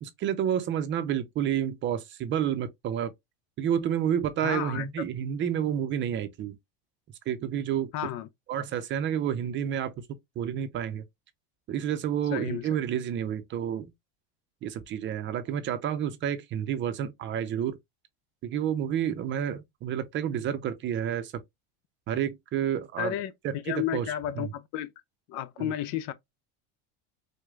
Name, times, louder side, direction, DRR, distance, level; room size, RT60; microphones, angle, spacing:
voice 1, 0.0-3.1 3.6-6.6 7.3-7.9 8.5-9.9 10.4-11.0 11.7-13.9 14.6-17.8 18.4-21.3 22.1-23.2 23.4-24.1 24.3-24.5 25.6-25.7, right 9 dB, 35° right, 0.6 m, -29 dB
voice 2, 4.4-5.1 7.9-8.3 12.3-12.7 23.0-24.9 25.3-26.1, left 11 dB, 55° left, 0.5 m, -32 dB
4.8 x 2.2 x 2.3 m
supercardioid pair, 120°, 33 cm